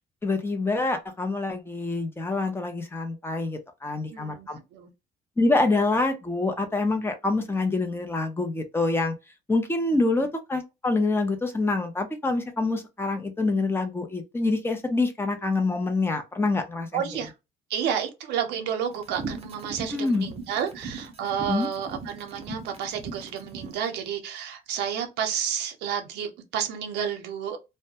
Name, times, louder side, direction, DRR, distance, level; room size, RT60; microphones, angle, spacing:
voice 1, 0.2-4.6 5.4-9.1 9.5-17.1 19.9-20.3 21.5-21.7, left 3 dB, 15° left, 0.6 m, -26 dB
voice 2, 4.1-4.9 16.9-17.3 17.7-27.6, right 8 dB, 85° right, 0.7 m, -31 dB
sound 1, 19.0-23.8, right 4 dB, 35° right, 0.6 m, -38 dB
2.2 x 2.1 x 2.7 m
cardioid pair, 110°, 17 cm